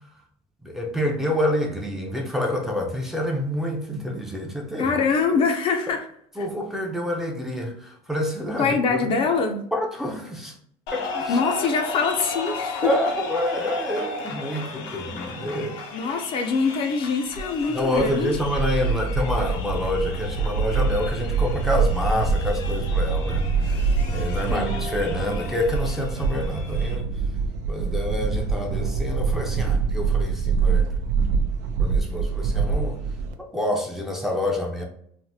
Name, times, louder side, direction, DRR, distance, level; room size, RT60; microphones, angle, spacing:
voice 1, 0.6-4.9 6.4-9.2 9.7-10.5 10.9-11.4 12.8-15.8 17.7-27.1 27.7-30.9 31.8-33.0 33.4-34.8, left 1 dB, 5° right, -1 dB, 0.5 m, -27 dB
voice 2, 4.8-6.1 8.6-9.6 11.3-12.9 15.9-18.4 24.5-24.8, left 5 dB, 45° left, 4 dB, 0.5 m, -24 dB
sound 1, 10.9-26.9, left 3 dB, 85° left, 0.7 m, -35 dB
sound 2, 17.4-33.3, right 5 dB, 70° right, 0.4 m, -25 dB
3.2 x 2.1 x 2.7 m, 0.67 s
cardioid pair, 125°, 13 cm